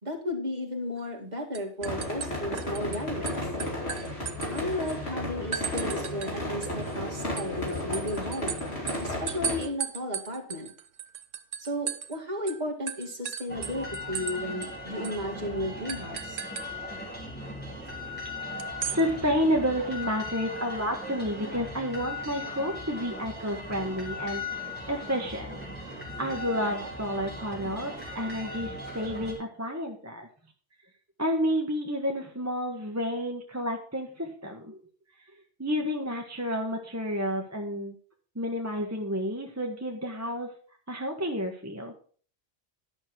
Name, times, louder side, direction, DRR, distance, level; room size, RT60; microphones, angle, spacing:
voice 1, 0.0-3.5 4.5-8.6 9.0-10.7 11.6-16.4, left 1 dB, 35° right, 1 dB, 2.2 m, -34 dB
sound 1, 1.0-1.3 1.5-3.0 3.3-5.0 5.5-6.3 6.6-12.2 12.5-12.6 12.9-14.4 14.6-14.7 15.0-15.2 15.9-16.7 18.6-19.0, right 8 dB, 75° right, 1.2 m, -36 dB
sound 2, 1.8-9.6, left 1 dB, 55° left, 4.2 m, -33 dB
sound 3, 13.5-29.3, left 1 dB, 5° left, 3.9 m, -38 dB
voice 2, 18.8-24.4 24.9-25.6 26.2-30.3 31.2-34.8 35.6-37.9 38.3-40.5 40.9-41.9, equal, 15° right, 1 dB, 1.3 m, -30 dB
11.0 x 6.4 x 6.0 m, 0.43 s
omnidirectional pair, 1.3 m